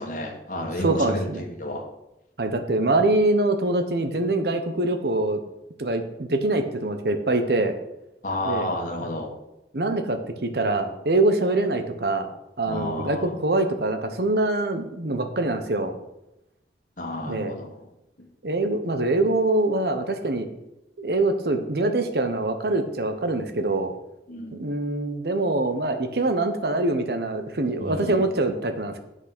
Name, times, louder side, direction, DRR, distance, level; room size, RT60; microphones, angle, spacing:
voice 1, 0.0-1.8 8.2-9.3 12.6-13.3 17.0-17.7 24.3-24.6 27.8-28.3, left 1 dB, 45° left, 0 dB, 1.6 m, -31 dB
voice 2, 0.8-1.4 2.4-5.4 5.8-7.8 8.5-8.7 9.0-9.1 9.7-12.3 12.6-15.9 17.3-17.5 18.4-20.5 21.0-23.9 24.5-29.0, right 2 dB, 65° right, 7 dB, 0.9 m, -24 dB
8.1 x 6.2 x 6.0 m, 0.90 s
head